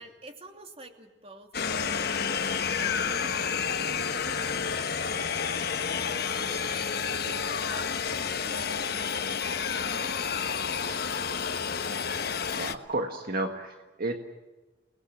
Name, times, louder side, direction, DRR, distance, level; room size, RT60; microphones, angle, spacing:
voice 1, 0.0-12.3, right 2 dB, 35° right, 4 dB, 2.7 m, -50 dB
sound 1, 1.5-12.8, left 6 dB, 60° left, 1.3 m, -30 dB
voice 2, 12.5-14.2, right 2 dB, 55° right, 4 dB, 1.7 m, -32 dB
29.5 x 19.5 x 7.4 m, 1.1 s
head